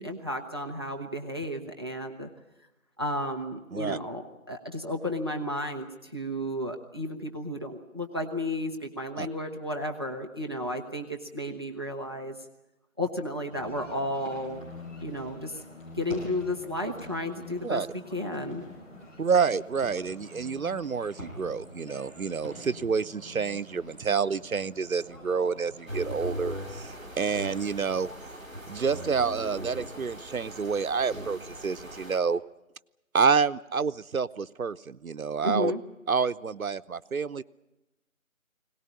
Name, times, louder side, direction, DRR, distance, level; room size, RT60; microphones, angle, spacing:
voice 1, 0.0-2.3 3.0-12.4 13.0-14.6 15.0-15.6 16.0-18.6 35.4-35.8, left 1 dB, 20° right, 3 dB, 0.9 m, -33 dB
sound 1, 13.5-28.3, left 2 dB, 60° left, 3.4 m, -49 dB
sound 2, 14.1-25.9, equal, 25° left, 5.9 m, -49 dB
voice 2, 19.2-28.1 28.7-32.4 33.1-35.7 36.1-37.4, right 5 dB, 90° right, 13 dB, 0.8 m, -28 dB
sound 3, 25.9-32.2, equal, 5° left, 1.6 m, -40 dB
21.5 x 18.5 x 9.9 m, 0.98 s
figure-of-eight pair, 165°, 41 cm